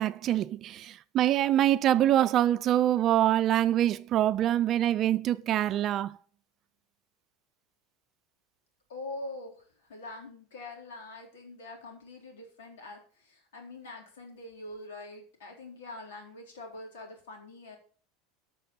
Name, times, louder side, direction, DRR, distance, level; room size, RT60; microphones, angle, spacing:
voice 1, 0.0-6.2, right 12 dB, 45° right, 0.6 m, -25 dB
voice 2, 8.9-17.8, left 2 dB, 85° left, 4.0 m, -44 dB
13.0 x 6.2 x 5.5 m
supercardioid pair, 105°, 0 cm